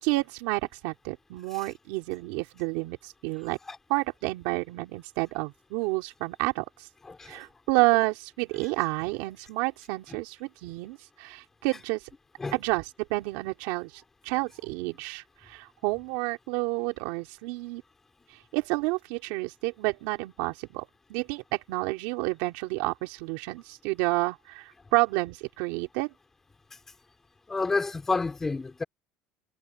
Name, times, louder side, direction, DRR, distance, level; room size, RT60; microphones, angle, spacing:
voice 1, 0.0-3.6 3.9-6.9 7.3-12.1 12.5-17.8 18.3-26.1, right 23 dB, 75° right, 3.7 m, -30 dB
voice 2, 7.1-7.4 12.4-12.5 27.5-28.8, left 3 dB, 10° left, 5.5 m, -29 dB
cardioid pair, 165°, 3 cm